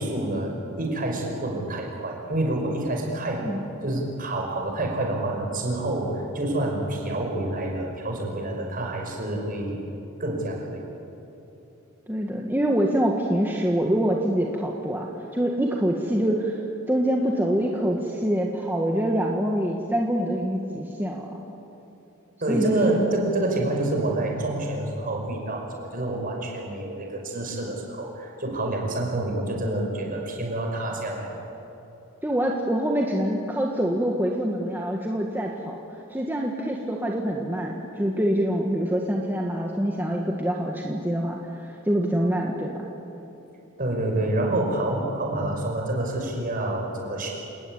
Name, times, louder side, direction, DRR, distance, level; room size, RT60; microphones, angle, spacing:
voice 1, 0.0-3.5 3.8-9.9 10.2-10.8 22.4-31.4 43.8-47.3, right 1 dB, 40° right, 1 dB, 5.6 m, -28 dB
voice 2, 12.1-16.6 16.9-21.4 22.5-23.1 32.2-35.7 36.1-42.9, equal, 10° right, -1 dB, 1.6 m, -25 dB
28.0 x 19.5 x 9.0 m, 2.9 s
head